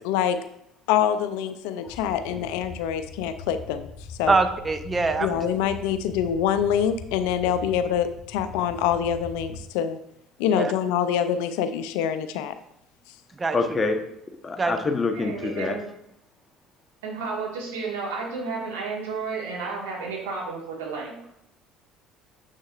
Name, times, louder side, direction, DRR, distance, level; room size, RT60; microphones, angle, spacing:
voice 1, 0.0-0.4 0.9-3.9 4.2-4.4 5.2-10.0 10.4-12.5, left 9 dB, 75° left, 11 dB, 0.4 m, -25 dB
sound 1, 1.9-9.6, left 3 dB, 55° left, 0.9 m, -41 dB
voice 2, 4.3-5.4 10.5-10.7 13.4-13.6 14.6-14.7, right 3 dB, 25° right, 8 dB, 0.8 m, -23 dB
voice 3, 13.5-14.0 14.3-15.8, left 3 dB, 25° left, 5 dB, 1.0 m, -26 dB
voice 4, 15.1-15.8 17.0-21.1, right 4 dB, 85° right, -2 dB, 1.7 m, -32 dB
7.3 x 6.3 x 2.4 m, 0.80 s
hypercardioid pair, 65°, 0 cm